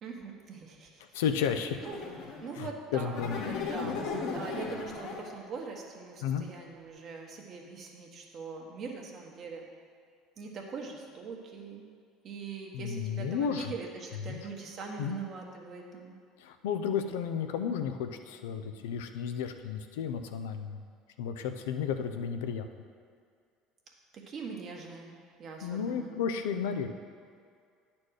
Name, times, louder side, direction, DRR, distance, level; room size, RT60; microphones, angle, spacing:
voice 1, 0.0-1.0 1.8-3.1 3.4-9.7 10.4-11.9 12.2-16.2 24.1-26.2, right 4 dB, 50° right, 0 dB, 1.5 m, -42 dB
voice 2, 1.1-1.8 2.6-3.4 6.2-6.5 12.7-13.7 14.2-14.4 15.0-15.2 16.4-20.8 21.2-22.7 25.6-26.9, left 7 dB, 85° left, 7 dB, 0.5 m, -33 dB
sound 1, 1.8-2.5 3.1-5.4, left 5 dB, 70° left, 1.5 m, -36 dB
9.6 x 4.3 x 6.4 m, 2.2 s
supercardioid pair, 90°, 0 cm